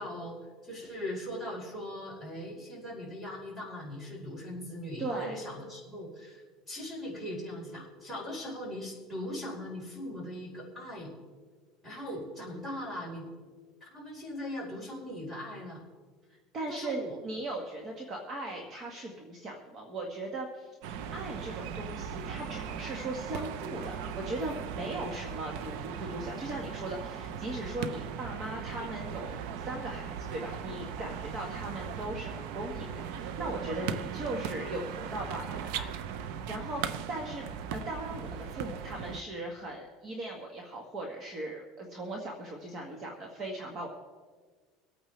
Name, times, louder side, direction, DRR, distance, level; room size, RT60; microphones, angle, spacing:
voice 1, 0.0-11.1 11.8-13.2 13.8-15.8 16.7-17.2, left 1 dB, 5° right, -4 dB, 4.4 m, -40 dB
voice 2, 5.0-5.4 11.9-12.0 16.5-20.7 21.1-35.9 36.3-36.8 37.1-37.4 37.7-43.9, right 1 dB, 30° right, 0 dB, 1.6 m, -38 dB
sound 1, 20.8-39.2, right 7 dB, 70° right, 0.8 m, -38 dB
25.0 x 9.0 x 3.3 m, 1.5 s
cardioid pair, 150°, 0 cm